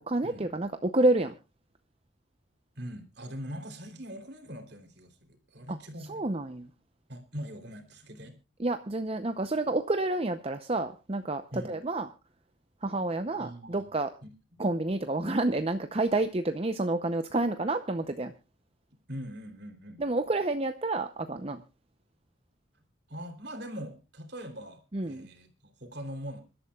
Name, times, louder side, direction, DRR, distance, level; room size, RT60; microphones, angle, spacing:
voice 1, 0.0-1.3 5.7-5.8 6.1-6.7 8.6-12.1 12.8-14.1 14.6-18.3 20.0-21.6 24.9-25.3, right 2 dB, 30° right, 9 dB, 0.6 m, -29 dB
voice 2, 2.7-6.2 7.1-8.4 11.5-11.7 13.4-14.0 14.2-14.6 19.1-20.0 23.1-26.4, equal, 55° right, 5 dB, 3.2 m, -42 dB
26.5 x 12.5 x 2.3 m, 0.29 s
head